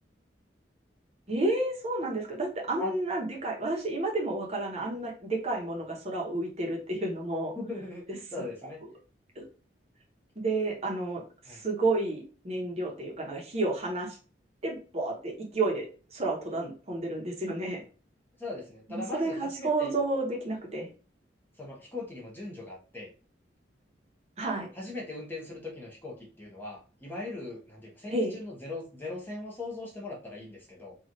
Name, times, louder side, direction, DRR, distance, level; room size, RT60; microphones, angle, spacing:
voice 1, 1.3-7.5 9.4-9.5 10.4-14.1 14.6-15.9 16.1-17.8 18.9-20.9 24.4-24.7 28.1-28.4, right 2 dB, 35° right, -1 dB, 0.8 m, -31 dB
voice 2, 7.5-8.8 11.5-11.6 18.4-19.9 21.6-23.1 24.7-30.9, left 2 dB, 10° left, -3 dB, 0.8 m, -39 dB
3.0 x 2.4 x 2.6 m, 0.38 s
head